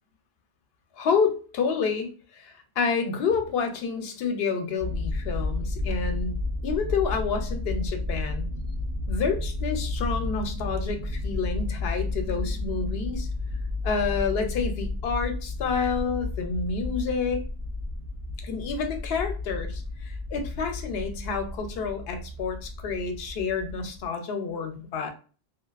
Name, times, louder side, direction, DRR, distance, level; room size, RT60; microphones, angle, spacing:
voice 1, 1.0-6.4 6.6-8.4 9.1-13.3 13.8-17.4 18.4-25.1, left 5 dB, 70° left, 5 dB, 0.8 m, -29 dB
sound 1, 4.8-24.1, left 2 dB, 65° right, 0.7 m, -32 dB
2.4 x 2.2 x 2.3 m, 0.37 s
omnidirectional pair, 1.1 m